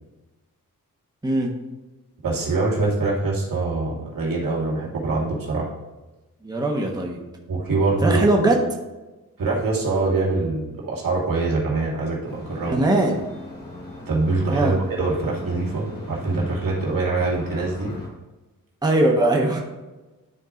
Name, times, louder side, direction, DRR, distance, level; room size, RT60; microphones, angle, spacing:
voice 1, 1.2-1.5 6.4-7.2 8.0-8.6 12.7-13.2 14.5-14.8 18.8-19.6, right 2 dB, 10° right, -1 dB, 1.2 m, -20 dB
voice 2, 2.2-5.7 7.5-8.3 9.4-12.8 14.1-17.9, right 3 dB, 70° right, -4 dB, 2.4 m, -24 dB
sound 1, 12.2-18.1, left 2 dB, 30° left, 2.4 m, -38 dB
12.0 x 4.6 x 2.5 m, 1.1 s
cardioid pair, 65°, 35 cm